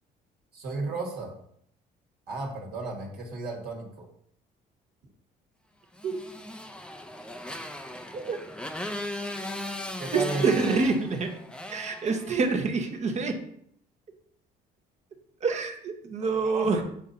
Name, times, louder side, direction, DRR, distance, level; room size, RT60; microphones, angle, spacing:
voice 1, 0.5-1.3 2.3-4.1 10.0-10.8 12.0-12.1 16.2-16.8, right 3 dB, 70° right, -1 dB, 1.7 m, -34 dB
Motorcycle, 6.0-12.7, left 1 dB, 5° left, 0.5 m, -38 dB
voice 2, 10.1-11.3 11.7-13.3 15.4-16.8, right 4 dB, 40° right, 5 dB, 1.0 m, -26 dB
6.5 x 2.8 x 5.2 m, 0.68 s
cardioid pair, 110°, 17 cm